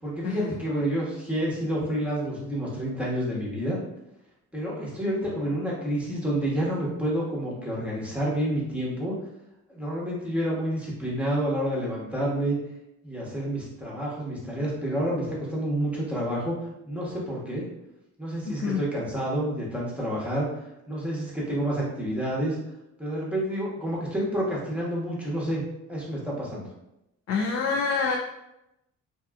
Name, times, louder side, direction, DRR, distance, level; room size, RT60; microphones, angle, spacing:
voice 1, 0.0-3.8 4.5-9.2 9.7-12.6 13.0-16.5 16.8-17.6 18.2-20.5 20.9-22.6 23.0-25.6 25.9-26.7, right 1 dB, 5° right, -6 dB, 0.9 m, -29 dB
voice 2, 27.3-28.2, left 5 dB, 55° left, 1 dB, 0.4 m, -26 dB
2.7 x 2.3 x 2.3 m, 0.86 s
cardioid pair, 90°, 30 cm